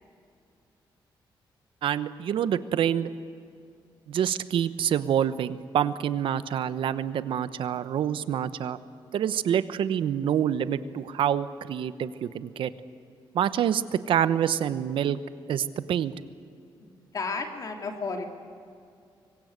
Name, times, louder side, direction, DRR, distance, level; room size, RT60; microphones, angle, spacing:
voice 1, 1.8-3.1 4.1-8.8 9.1-12.7 13.3-15.2 15.5-16.1, right 9 dB, 75° right, 14 dB, 1.0 m, -27 dB
voice 2, 16.8-18.2, left 4 dB, 45° left, 4 dB, 2.9 m, -33 dB
25.0 x 22.0 x 8.1 m, 2.4 s
cardioid pair, 120°, 9 cm